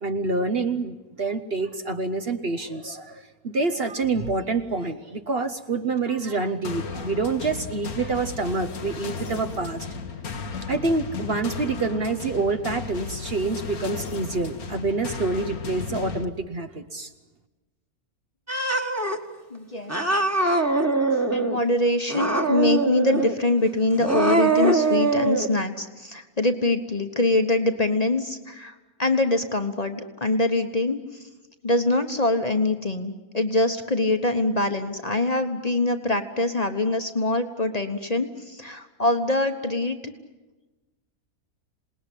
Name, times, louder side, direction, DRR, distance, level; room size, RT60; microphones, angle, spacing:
voice 1, 0.0-9.9 10.7-17.1, right 3 dB, 45° right, 8 dB, 1.1 m, -27 dB
sound 1, 6.6-16.2, left 5 dB, 80° left, 1.8 m, -35 dB
Cat, 18.5-19.2 19.9-21.6 22.1-23.4 23.9-25.5, right 3 dB, 10° right, 1.6 m, -22 dB
voice 2, 19.5-19.9 21.3-28.7 29.0-31.0 31.6-40.1, left 2 dB, 30° left, 7 dB, 1.2 m, -24 dB
27.5 x 19.5 x 10.0 m, 1.2 s
omnidirectional pair, 1.6 m